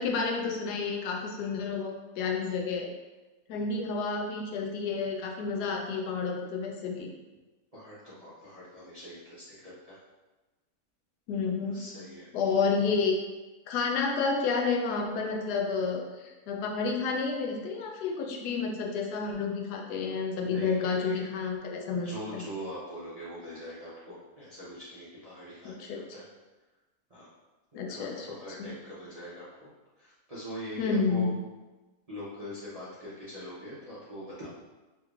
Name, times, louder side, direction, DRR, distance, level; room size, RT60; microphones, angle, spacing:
voice 1, 0.0-2.9 3.5-7.1 11.3-11.8 12.3-13.2 13.7-22.4 25.8-26.0 27.7-28.3 28.6-28.7 30.8-31.4, left 4 dB, 90° left, 2 dB, 1.1 m, -30 dB
voice 2, 7.7-10.0 11.6-12.3 20.4-21.3 22.0-26.3 27.1-27.3 27.7-29.7 30.0-31.3 32.1-34.5, equal, 45° right, -11 dB, 0.5 m, -43 dB
3.3 x 3.0 x 2.4 m, 1.2 s
omnidirectional pair, 1.7 m